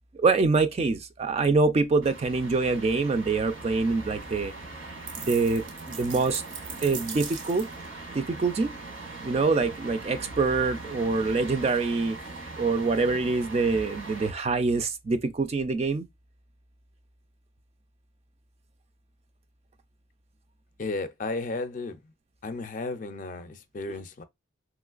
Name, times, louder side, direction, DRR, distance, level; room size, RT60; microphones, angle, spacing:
voice 1, 0.1-4.5 5.2-6.4 6.8-7.7 8.1-8.7 9.2-12.2 12.6-16.1, right 3 dB, 30° right, 0.3 m, -25 dB
sound 1, 2.0-14.3, right 2 dB, 85° right, 1.5 m, -41 dB
sound 2, 5.1-7.9, right 6 dB, 70° right, 0.7 m, -40 dB
voice 2, 20.8-22.0 22.4-24.2, left 3 dB, 40° left, 0.4 m, -33 dB
3.1 x 3.0 x 2.3 m
head